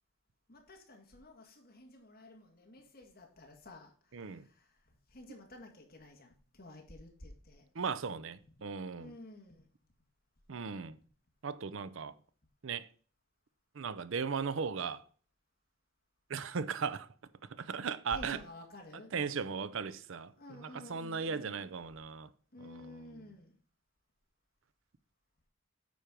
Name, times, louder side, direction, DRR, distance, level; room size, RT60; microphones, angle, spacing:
voice 1, 0.5-4.8 5.1-7.7 9.0-9.7 18.1-19.1 20.4-21.7 22.5-23.6, left 1 dB, 45° left, 1.9 m, -52 dB
voice 2, 4.1-4.4 7.8-9.1 10.5-11.0 11.4-12.1 12.6-12.9 13.8-15.0 16.3-17.1 17.6-18.4 19.1-22.3 22.6-23.1, right 5 dB, 65° right, 0.5 m, -37 dB
9.2 x 4.5 x 5.1 m
head